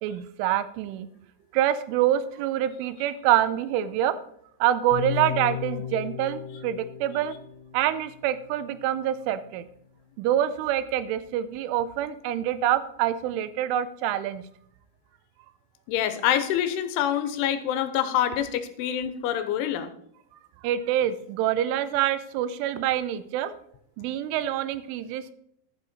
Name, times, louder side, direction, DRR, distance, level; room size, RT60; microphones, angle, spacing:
voice 1, 0.0-1.1 1.5-4.2 4.6-7.3 7.7-9.7 10.2-14.4 20.6-23.5 24.0-25.3, right 11 dB, 80° right, 13 dB, 3.1 m, -26 dB
sound 1, 4.9-9.0, left 9 dB, 65° left, 2.5 m, -36 dB
voice 2, 15.9-19.9, left 10 dB, 80° left, 10 dB, 3.1 m, -26 dB
12.0 x 8.0 x 4.2 m, 0.69 s
omnidirectional pair, 5.8 m